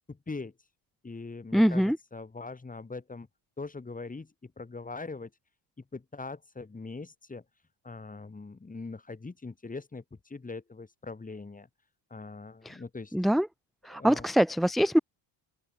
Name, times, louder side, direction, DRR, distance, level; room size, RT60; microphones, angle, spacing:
voice 1, 0.1-0.5 1.0-3.3 3.6-5.3 5.9-7.4 7.8-11.7 12.1-13.1 13.9-14.3, left 3 dB, 15° left, 3.9 m, -41 dB
voice 2, 1.5-2.0 12.6-12.8 13.1-13.5 13.8-15.0, equal, ahead, 0.4 m, -23 dB
cardioid pair, 105°, 46 cm